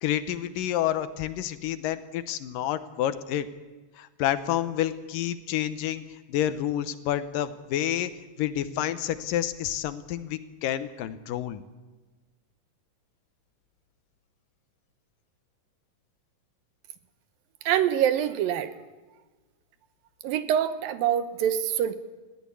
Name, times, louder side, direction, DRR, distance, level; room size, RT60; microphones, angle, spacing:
voice 1, 0.0-3.5 4.0-6.0 6.3-8.1 8.4-11.6, left 11 dB, 80° left, 12 dB, 2.5 m, -29 dB
voice 2, 17.7-18.7 20.2-21.9, right 10 dB, 90° right, 11 dB, 2.8 m, -25 dB
21.0 x 15.5 x 8.3 m, 1.3 s
omnidirectional pair, 3.9 m